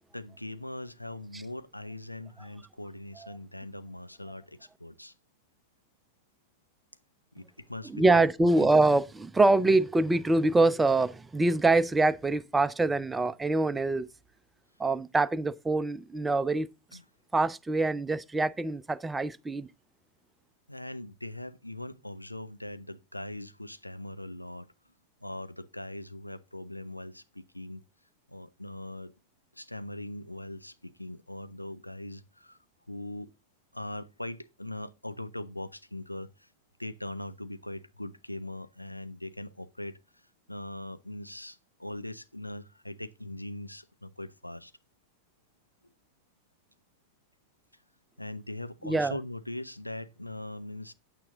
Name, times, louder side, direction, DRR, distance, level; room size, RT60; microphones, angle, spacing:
voice 1, 0.1-5.1 7.3-8.2 8.6-8.7 16.9-17.0 20.7-24.7 25.2-27.8 28.3-29.1 29.6-32.6 32.9-33.3 33.7-36.3 36.8-40.0 40.5-44.7 48.2-50.9, left 1 dB, 85° left, 0.8 m, -41 dB
voice 2, 7.9-14.1 14.8-16.7 17.3-19.7 48.8-49.2, right 2 dB, 10° right, 0.6 m, -24 dB
8.9 x 8.9 x 3.7 m
figure-of-eight pair, 90°, 0 cm